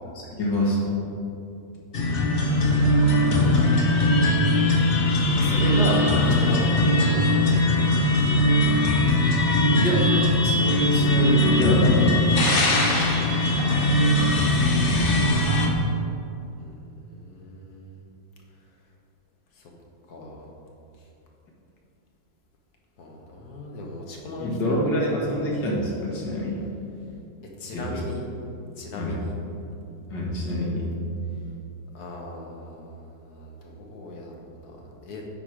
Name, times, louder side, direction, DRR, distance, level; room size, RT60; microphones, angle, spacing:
voice 1, 0.4-0.9 9.7-10.0 10.4-12.4 14.7-15.1 24.4-26.6 27.7-28.0 28.9-29.2 30.1-30.9, equal, 80° left, -3 dB, 2.2 m, -26 dB
sound 1, 1.9-15.7, left 1 dB, 40° left, 0.8 m, -20 dB
voice 2, 3.3-4.3 5.4-7.8 8.2-8.3 12.6-12.9 16.6-16.7 17.0-18.0 19.6-19.7 20.1-20.5 23.0-24.8 27.6-28.3 28.8-29.4 31.9-34.3 34.6-34.8 35.0-35.2, left 2 dB, 65° left, -1 dB, 1.6 m, -36 dB
9.6 x 4.5 x 5.0 m, 2.7 s
omnidirectional pair, 1.9 m